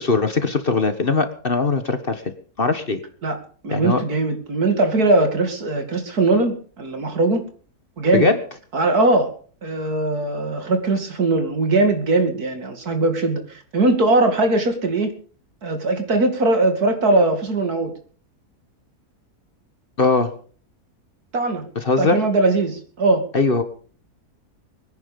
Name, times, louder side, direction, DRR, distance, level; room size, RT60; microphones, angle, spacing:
voice 1, 0.0-2.2 2.6-3.0 3.7-4.0 8.1-8.4 20.0-20.3 21.7-22.2 23.3-23.6, left 3 dB, 35° left, 9 dB, 1.5 m, -20 dB
voice 2, 3.6-7.5 8.0-8.3 8.7-9.3 9.6-15.1 15.6-17.9 21.3-21.6 22.0-23.3, right 2 dB, 75° right, 7 dB, 3.0 m, -20 dB
23.0 x 10.0 x 5.2 m, 0.43 s
omnidirectional pair, 1.6 m